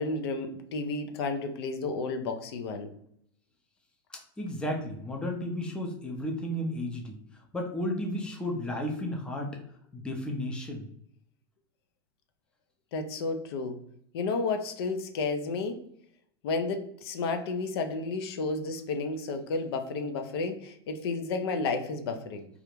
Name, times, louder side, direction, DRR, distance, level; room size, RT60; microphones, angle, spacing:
voice 1, 0.0-2.9 12.9-13.8 14.1-15.8 16.4-22.5, left 3 dB, 75° left, 7 dB, 0.4 m, -32 dB
voice 2, 4.1-7.2 7.5-9.6 9.9-10.9, left 1 dB, 5° left, 1 dB, 0.4 m, -33 dB
2.4 x 2.0 x 2.9 m, 0.70 s
supercardioid pair, 130°, 13 cm